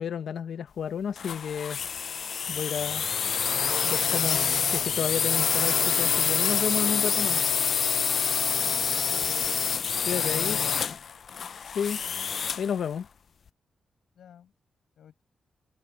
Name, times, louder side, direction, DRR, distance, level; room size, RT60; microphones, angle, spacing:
voice 1, 0.0-1.8 2.5-3.0 3.8-4.4 4.7-7.4 10.1-10.6 11.7-12.0 12.6-13.1, left 7 dB, 70° left, 1.0 m, -31 dB
sound 1, 1.2-12.7, left 6 dB, 55° left, 0.4 m, -27 dB
voice 2, 10.3-10.9 14.1-14.5 15.0-15.2, left 9 dB, 85° left, 6.4 m, -51 dB
wide cardioid pair, 155°, 0 cm